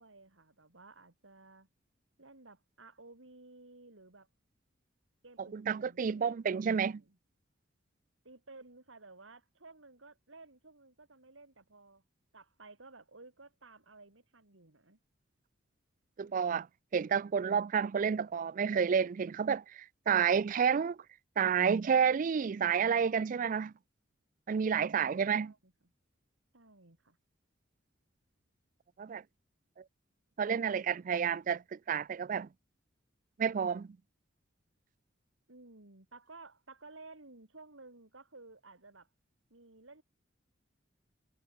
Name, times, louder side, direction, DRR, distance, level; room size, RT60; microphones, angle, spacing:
voice 1, 0.0-1.7 2.2-4.3 5.2-7.2 8.2-12.0 12.3-15.0 24.8-25.7 26.5-27.2 35.5-39.1 39.5-40.0, right 3 dB, 90° right, 3.4 m, -55 dB
voice 2, 5.5-7.0 16.2-16.7 16.9-21.0 21.4-23.7 24.5-25.5 29.0-29.2 30.4-32.5 33.4-33.9, right 7 dB, 45° right, 0.3 m, -30 dB
head